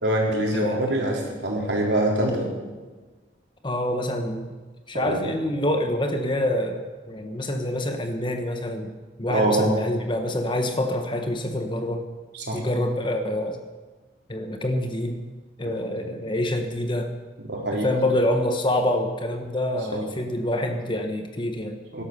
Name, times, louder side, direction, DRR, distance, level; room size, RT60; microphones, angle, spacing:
voice 1, 0.0-2.5 5.0-5.2 9.3-9.7 12.3-12.6 15.7-16.2 17.4-17.9 19.9-20.0 21.9-22.0, right 1 dB, 65° right, -1 dB, 3.9 m, -25 dB
voice 2, 0.5-0.9 3.6-4.5 4.9-8.9 9.2-12.0 12.5-13.6 14.3-15.2 15.6-17.1 17.7-21.8, left 1 dB, 25° left, 6 dB, 1.3 m, -26 dB
18.0 x 11.5 x 6.9 m, 1.3 s
head